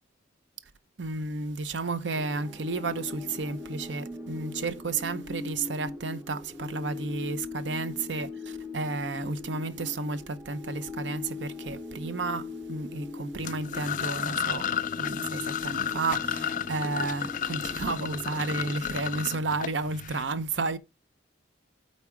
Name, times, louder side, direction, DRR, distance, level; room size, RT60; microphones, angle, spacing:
voice 1, 1.0-14.7 15.0-20.8, right 3 dB, 65° right, 0.8 m, -32 dB
sound 1, 2.2-18.8, left 3 dB, 10° right, 0.8 m, -40 dB
sound 2, 13.4-20.2, left 9 dB, 40° left, 0.3 m, -33 dB
8.4 x 4.2 x 4.9 m
head